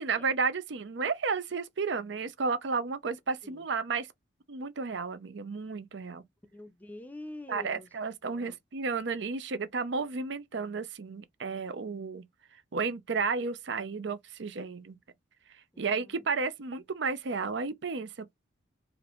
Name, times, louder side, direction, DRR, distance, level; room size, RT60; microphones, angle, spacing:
voice 1, 0.0-4.1 4.5-6.2 7.5-12.2 12.5-15.0 15.8-18.3, right 4 dB, 70° right, 0.6 m, -32 dB
voice 2, 6.5-7.9 8.3-8.6 15.7-16.3, left 1 dB, 10° left, 0.5 m, -46 dB
5.0 x 2.5 x 3.0 m
head